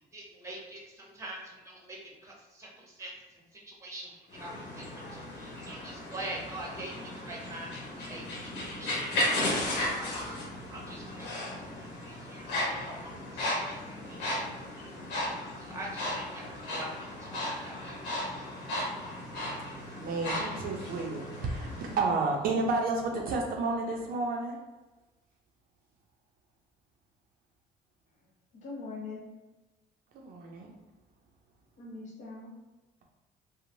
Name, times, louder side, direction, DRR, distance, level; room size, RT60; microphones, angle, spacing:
voice 1, 0.0-9.6 9.9-14.4 15.2-18.4, right 1 dB, 15° right, -2 dB, 0.9 m, -45 dB
sound 1, 4.3-22.0, left 1 dB, 90° left, 0.9 m, -35 dB
voice 2, 20.0-24.6 30.1-30.7, right 3 dB, 60° right, 0 dB, 0.4 m, -31 dB
voice 3, 28.5-29.2 31.8-32.5, left 3 dB, 45° left, -3 dB, 0.8 m, -41 dB
2.9 x 2.0 x 2.6 m, 1.2 s
cardioid pair, 110°, 17 cm